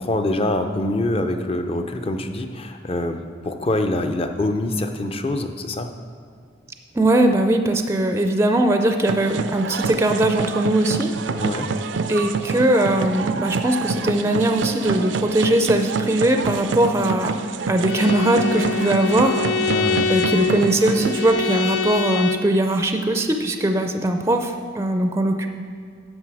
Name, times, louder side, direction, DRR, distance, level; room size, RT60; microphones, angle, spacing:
voice 1, 0.0-5.9 11.4-11.7 19.7-20.1, left 1 dB, 30° left, 6 dB, 0.6 m, -25 dB
voice 2, 6.9-11.1 12.1-17.4 17.7-19.5 20.1-25.5, right 1 dB, 15° right, 5 dB, 0.4 m, -20 dB
sound 1, 9.1-21.3, right 4 dB, 80° right, 0.4 m, -27 dB
Bowed string instrument, 17.9-22.5, left 4 dB, 80° left, 0.6 m, -25 dB
9.7 x 6.5 x 4.8 m, 2.3 s
head